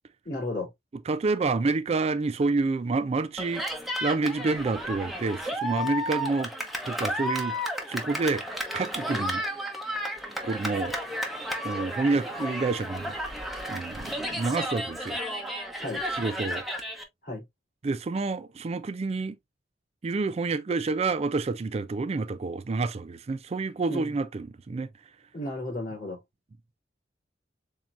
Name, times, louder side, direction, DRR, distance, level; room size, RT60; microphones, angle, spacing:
voice 1, 0.2-0.7 9.1-9.2 15.8-16.0 17.2-17.4 23.9-24.1 25.3-26.2, left 2 dB, 50° left, 3.3 m, -33 dB
voice 2, 1.1-6.5 6.9-7.6 7.8-9.4 10.4-10.9 11.6-13.1 13.7-15.2 16.1-16.6 17.8-19.4 20.0-24.9, right 3 dB, 35° right, 0.4 m, -28 dB
Cheering, 3.4-17.0, equal, ahead, 1.0 m, -33 dB
7.3 x 2.8 x 2.4 m
head